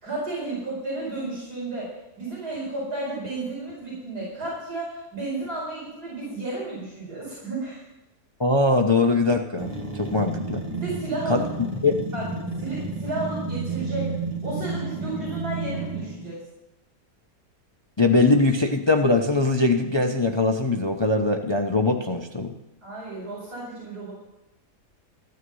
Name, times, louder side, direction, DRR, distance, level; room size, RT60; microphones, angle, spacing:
voice 1, 0.0-7.9 10.7-11.4 12.1-12.3 12.6-14.1 14.4-16.4 22.8-24.1, right 2 dB, 85° right, -5 dB, 5.4 m, -32 dB
voice 2, 8.4-9.7 10.0-10.6 11.3-11.4 11.8-12.0 18.0-22.5, left 2 dB, 20° left, 4 dB, 0.7 m, -21 dB
sound 1, 9.6-16.4, right 3 dB, 25° right, 1.6 m, -31 dB
14.5 x 10.0 x 5.5 m, 0.98 s
omnidirectional pair, 1.7 m